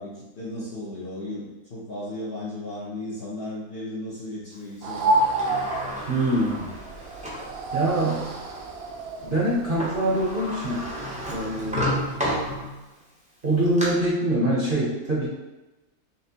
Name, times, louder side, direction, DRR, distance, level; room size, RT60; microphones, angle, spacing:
voice 1, 0.0-5.1, left 1 dB, 50° left, -6 dB, 0.8 m, -35 dB
sound 1, 4.8-11.8, right 2 dB, 75° right, 0.5 m, -30 dB
Sliding door, 4.9-7.5 8.1-8.2 9.5-9.6 9.8-13.0 13.4-13.8, equal, 5° right, 0.6 m, -31 dB
voice 2, 6.1-6.7 7.7-8.4 9.2-10.9 11.3-12.2 13.4-15.3, right 1 dB, 45° right, -6 dB, 0.9 m, -24 dB
4.2 x 3.0 x 2.8 m, 1.1 s
omnidirectional pair, 1.5 m